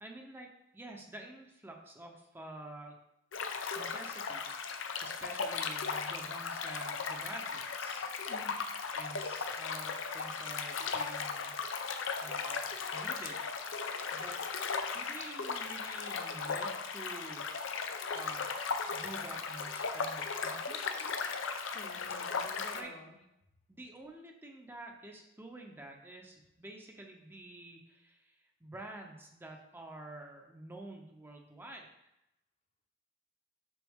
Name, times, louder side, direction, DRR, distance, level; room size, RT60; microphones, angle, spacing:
voice 1, 0.0-3.0 3.8-8.1 8.9-11.5 12.2-13.4 14.1-14.4 14.9-18.5 18.9-21.3 22.7-22.9 23.7-31.9, right 1 dB, 10° right, 1 dB, 0.7 m, -49 dB
sound 1, 3.3-22.8, left 5 dB, 85° left, 0.6 m, -37 dB
voice 2, 8.3-8.6 21.7-23.2, left 2 dB, 35° left, 3 dB, 0.8 m, -50 dB
6.2 x 5.8 x 3.6 m, 0.84 s
head